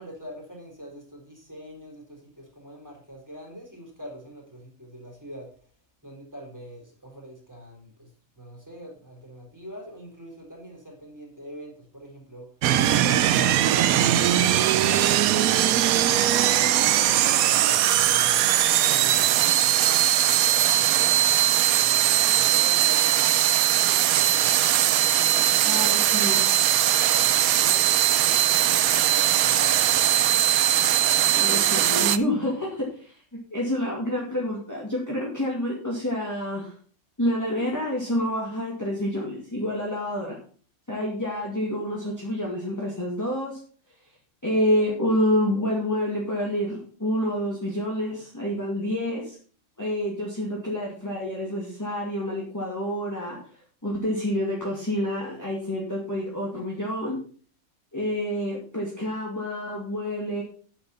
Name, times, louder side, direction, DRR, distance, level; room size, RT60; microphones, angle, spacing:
voice 1, 0.0-5.5 6.0-8.1 8.4-12.5 12.9-16.8 17.4-18.6 18.8-21.2 21.7-24.6 25.0-30.4, equal, 10° right, -2 dB, 3.9 m, -43 dB
sound 1, 12.6-32.2, right 12 dB, 85° right, 1.1 m, -20 dB
voice 2, 25.7-26.4 31.3-33.1 33.5-36.7 37.2-40.4 40.9-43.6 44.4-49.4 49.8-53.4 53.8-57.2 57.9-60.4, left 1 dB, 10° left, -3 dB, 2.2 m, -28 dB
9.1 x 7.5 x 5.6 m, 0.44 s
omnidirectional pair, 1.5 m